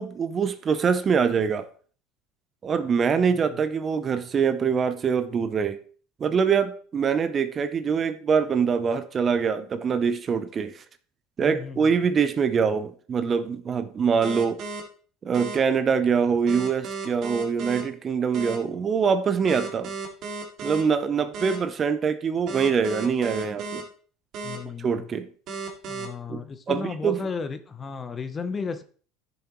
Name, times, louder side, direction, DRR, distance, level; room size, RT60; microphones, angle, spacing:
voice 1, 0.0-1.7 2.6-5.8 6.2-10.7 11.4-14.6 15.2-19.9 20.6-23.8 24.8-25.3 26.3-26.4 26.7-27.3, right 6 dB, 30° right, 0.7 m, -24 dB
voice 2, 11.4-12.0 24.4-25.1 25.9-28.8, left 5 dB, 25° left, 0.8 m, -34 dB
sound 1, 14.2-14.8 15.3-15.6 16.5-17.8 18.3-18.5 19.5-20.8 21.3-21.6 22.5-23.8 24.3-24.6 25.5-26.0, right 4 dB, 50° right, 2.2 m, -34 dB
10.0 x 7.0 x 3.1 m
supercardioid pair, 105°, 0 cm